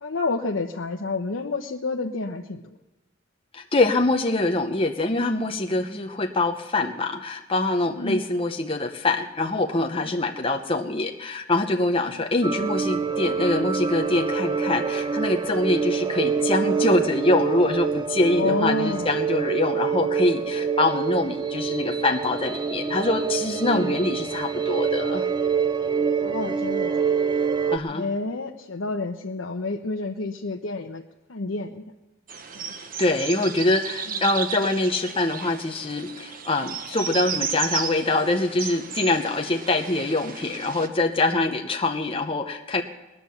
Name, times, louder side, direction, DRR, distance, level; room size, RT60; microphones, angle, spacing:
voice 1, 0.0-2.6 7.9-8.2 10.1-10.2 12.1-12.3 18.3-19.1 23.5-24.0 26.2-26.9 27.9-31.0 31.3-31.8 32.5-32.6, left 3 dB, 85° left, 2 dB, 0.9 m, -29 dB
voice 2, 3.5-25.3 27.7-28.1 33.0-42.8, left 2 dB, 30° left, 4 dB, 0.8 m, -24 dB
sound 1, 12.4-27.8, right 6 dB, 20° right, 0.5 m, -26 dB
sound 2, 32.3-40.9, right 6 dB, 45° right, 1.0 m, -34 dB
20.5 x 9.4 x 7.1 m, 1.0 s
head